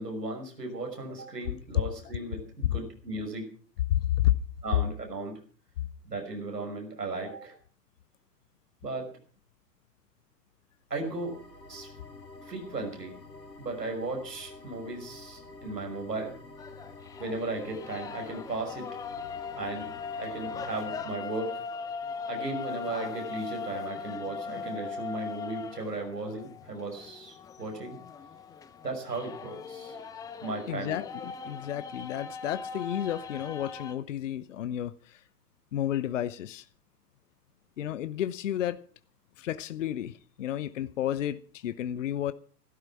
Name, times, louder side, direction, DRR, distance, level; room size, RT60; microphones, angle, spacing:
voice 1, 0.0-3.5 4.6-5.4 6.0-7.6 8.8-9.1 10.9-11.4 11.7-11.9 12.5-13.1 13.6-16.3 17.2-18.9 19.5-19.9 20.2-21.6 22.3-28.0 28.8-30.0 30.4-31.0, right 2 dB, 75° right, 6.0 m, -36 dB
voice 2, 3.9-4.3 7.2-7.3 30.7-35.2 35.7-36.7 37.8-38.8 39.4-42.3, left 12 dB, 50° left, 0.8 m, -31 dB
sound 1, 11.0-21.0, left 3 dB, 80° left, 3.7 m, -48 dB
sound 2, 16.6-33.9, left 5 dB, 5° left, 0.6 m, -40 dB
15.0 x 12.5 x 6.0 m
figure-of-eight pair, 105°, 49 cm